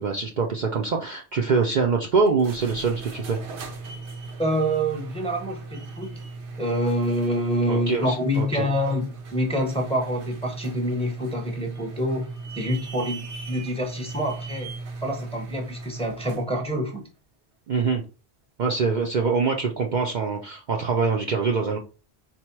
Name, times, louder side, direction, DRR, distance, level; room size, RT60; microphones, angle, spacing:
voice 1, 0.0-3.4 7.7-8.7 17.7-18.0 18.6-21.8, right 4 dB, 55° right, 1 dB, 0.6 m, -24 dB
sound 1, 2.3-16.5, right 3 dB, 85° right, 1.1 m, -37 dB
voice 2, 4.4-6.2 6.6-14.7 15.0-17.0, equal, 5° left, 2 dB, 0.7 m, -27 dB
4.3 x 2.0 x 4.4 m, 0.33 s
omnidirectional pair, 1.1 m